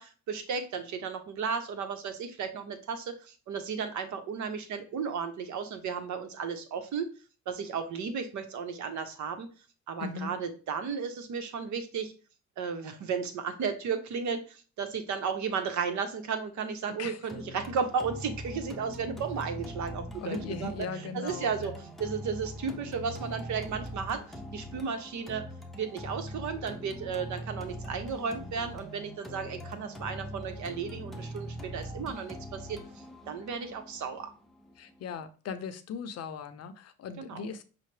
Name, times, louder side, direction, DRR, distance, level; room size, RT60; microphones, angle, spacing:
voice 1, 0.0-7.1 7.5-9.5 9.9-12.1 12.6-20.8 21.1-21.7 22.0-24.2 24.5-25.5 25.8-32.8 33.3-34.3 37.2-37.4, right 6 dB, 70° right, 8 dB, 0.8 m, -34 dB
voice 2, 10.0-10.3 17.0-17.2 20.1-21.7 34.7-37.6, left 5 dB, 55° left, 10 dB, 0.6 m, -38 dB
sound 1, 17.3-35.3, equal, ahead, 0.6 m, -42 dB
5.6 x 2.0 x 3.2 m, 0.37 s
cardioid pair, 90°, 30 cm